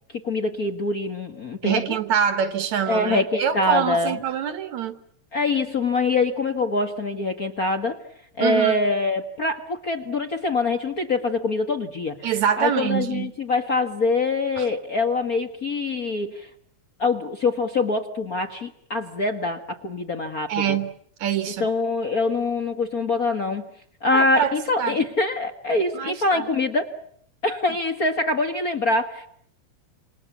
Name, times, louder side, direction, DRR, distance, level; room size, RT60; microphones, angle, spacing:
voice 1, 0.2-2.0 2.9-4.2 5.3-8.0 8.3-12.3 12.6-16.5 17.0-20.5 21.6-23.7 24.0-26.9 27.4-29.3, left 3 dB, 40° left, 5 dB, 1.5 m, -24 dB
voice 2, 1.6-5.0 8.4-8.8 12.2-13.3 14.6-14.7 20.5-20.9 21.2-21.7 24.1-25.0 25.9-26.5, right 8 dB, 70° right, 10 dB, 2.8 m, -25 dB
28.0 x 27.5 x 7.3 m, 0.68 s
omnidirectional pair, 3.4 m